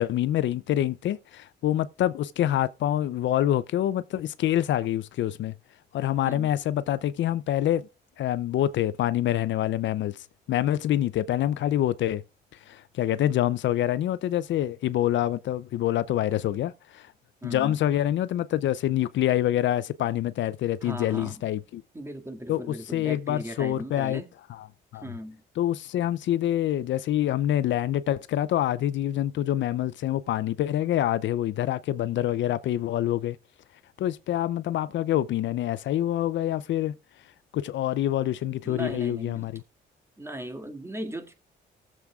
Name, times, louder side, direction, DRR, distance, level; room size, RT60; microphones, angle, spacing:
voice 1, 0.0-5.5 5.9-7.9 8.2-12.2 12.7-17.1 17.4-21.8 22.5-24.2 24.6-24.7 24.9-25.0 25.6-33.4 34.0-36.9 37.5-39.6, left 12 dB, 70° left, 0.5 m, -26 dB
voice 2, 17.4-17.8 20.8-21.4 21.9-24.3 25.0-25.4 38.6-39.5 40.2-41.3, equal, 15° right, 2.0 m, -37 dB
19.5 x 7.4 x 2.4 m
cardioid pair, 90°, 20 cm